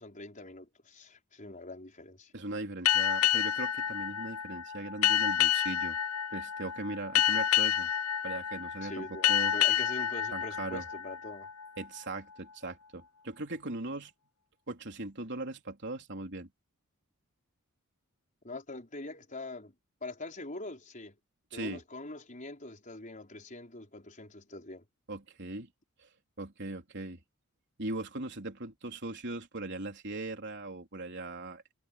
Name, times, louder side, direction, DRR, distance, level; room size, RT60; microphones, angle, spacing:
voice 1, 0.0-2.3 8.8-11.5 18.4-19.7 20.0-21.1 21.5-24.8, left 2 dB, 35° left, 5.1 m, -44 dB
voice 2, 2.3-6.0 6.3-7.9 8.2-9.5 10.3-10.8 11.8-14.1 14.7-16.5 21.5-21.8 25.1-25.7 26.0-26.1 26.4-27.2 27.8-31.7, right 2 dB, 50° right, 3.7 m, -39 dB
sound 1, 2.9-12.0, left 10 dB, 75° left, 0.7 m, -29 dB
head